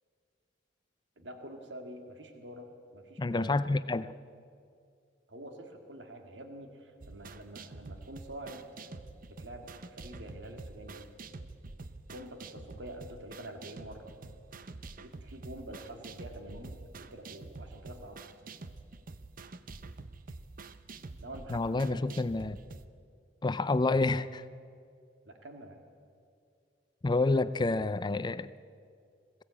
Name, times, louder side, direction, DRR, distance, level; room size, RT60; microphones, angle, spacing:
voice 1, 1.2-3.6 5.3-11.1 12.1-14.1 15.0-18.2 21.2-22.1 25.3-25.8, right 1 dB, 70° right, 2.0 m, -47 dB
voice 2, 3.2-4.1 21.5-22.6 23.4-24.4 27.0-28.5, left 3 dB, 25° left, 0.4 m, -28 dB
sound 1, 7.0-22.9, right 3 dB, 50° right, 0.8 m, -47 dB
21.0 x 16.0 x 8.5 m
head